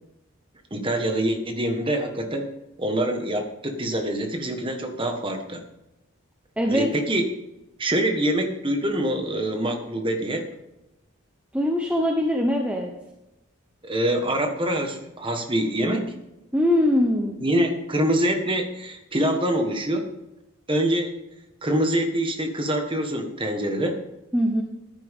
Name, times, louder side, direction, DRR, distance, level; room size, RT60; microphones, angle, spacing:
voice 1, 0.7-2.5 2.8-5.6 6.7-7.3 7.8-10.5 13.8-16.1 17.4-20.1 20.7-21.1 21.6-24.0, right 1 dB, 25° right, 4 dB, 1.5 m, -25 dB
voice 2, 6.6-6.9 11.5-12.9 16.5-17.4 24.3-24.6, left 1 dB, 5° right, 1 dB, 0.9 m, -22 dB
14.0 x 10.5 x 3.7 m, 0.94 s
head